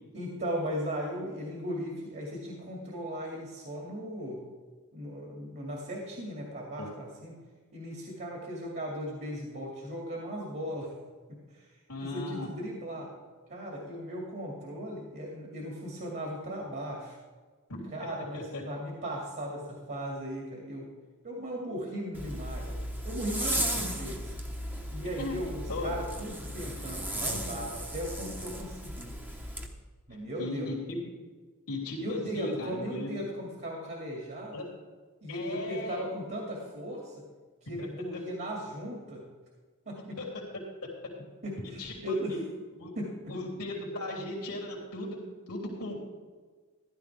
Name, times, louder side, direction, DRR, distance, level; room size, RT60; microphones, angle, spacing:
voice 1, 0.1-4.4 4.9-7.4 7.7-10.9 11.3-11.6 12.0-13.1 13.5-17.2 17.9-20.9 21.2-22.8 23.0-24.3 24.9-29.2 30.1-30.7 32.0-34.5 35.2-37.1 37.7-39.2 39.9-40.2 41.4-42.4 43.0-43.3, equal, 50° right, -1 dB, 2.4 m, -37 dB
voice 2, 11.9-12.5 17.7-17.8 18.3-18.6 23.5-23.6 25.2-25.4 25.7-25.9 30.4-30.8 31.7-33.2 34.5-34.6 35.3-36.0 37.7-38.2 40.2-40.4 41.6-42.4 42.8-42.9 43.3-45.2 45.5-46.1, left 2 dB, 90° left, -3 dB, 3.3 m, -37 dB
Zipper (clothing), 22.1-29.7, right 1 dB, 10° right, 1.1 m, -35 dB
15.0 x 12.0 x 3.5 m, 1.4 s
head